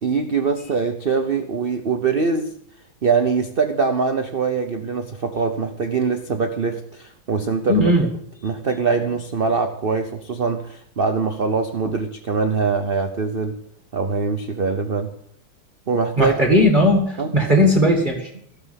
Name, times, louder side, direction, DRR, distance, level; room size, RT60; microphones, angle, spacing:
voice 1, 0.0-2.5 3.0-7.9 8.4-13.6 13.9-15.1 15.9-16.3 17.2-17.3, right 5 dB, 55° right, 6 dB, 0.6 m, -23 dB
voice 2, 7.7-8.1 11.8-12.0 16.2-18.3, equal, 25° right, 1 dB, 2.1 m, -17 dB
16.5 x 6.7 x 8.1 m, 0.69 s
omnidirectional pair, 2.3 m